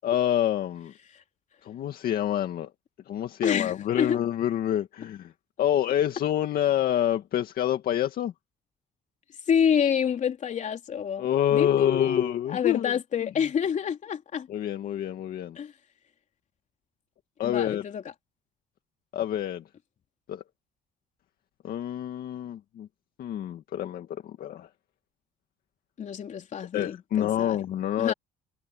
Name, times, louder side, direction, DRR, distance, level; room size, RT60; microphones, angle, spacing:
voice 1, 0.0-0.9 1.6-2.7 3.1-5.3 5.6-8.3 11.2-12.9 14.5-15.6 17.4-17.8 19.1-19.6 20.3-20.4 21.6-22.9 23.2-24.7 26.7-28.1, left 11 dB, 60° left, 2.0 m, -27 dB
voice 2, 3.4-4.2 9.5-14.5 15.6-15.7 17.4-18.0 26.0-27.6 28.0-28.1, left 8 dB, 45° left, 3.5 m, -28 dB
cardioid pair, 110°, 17 cm